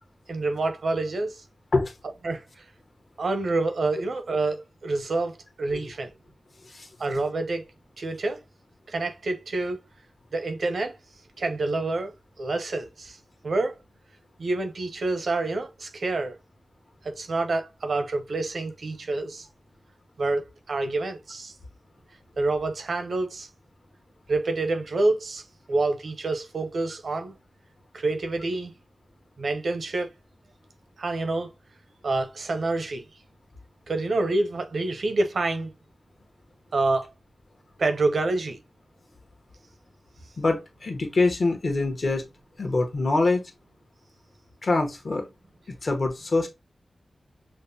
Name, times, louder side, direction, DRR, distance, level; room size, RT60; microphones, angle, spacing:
voice 1, 0.3-1.4 2.2-2.4 3.2-6.1 7.0-7.6 8.0-8.4 8.9-9.8 10.3-10.9 11.4-12.1 12.4-13.2 13.4-13.8 14.4-16.3 17.0-19.5 20.2-21.5 22.4-23.5 24.3-25.4 25.7-27.3 27.9-28.7 29.4-30.1 31.0-31.5 32.0-33.0 33.9-35.7 36.7-37.1 37.8-38.6, right 2 dB, 75° right, 0.6 m, -27 dB
voice 2, 40.4-42.3 42.6-43.4 44.6-45.3 45.7-46.5, left 3 dB, 55° left, 0.9 m, -24 dB
5.6 x 2.1 x 2.6 m
wide cardioid pair, 120°, 0 cm